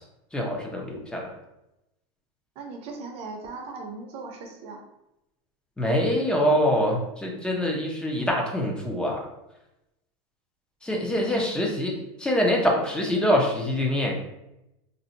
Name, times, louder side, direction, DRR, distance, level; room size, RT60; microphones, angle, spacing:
voice 1, 0.3-1.3 5.8-9.3 10.8-14.1, equal, 5° left, -1 dB, 0.4 m, -25 dB
voice 2, 2.6-4.8 11.3-11.5, right 3 dB, 40° right, 2 dB, 0.6 m, -38 dB
2.6 x 2.1 x 3.8 m, 0.89 s
supercardioid pair, 155°, 15 cm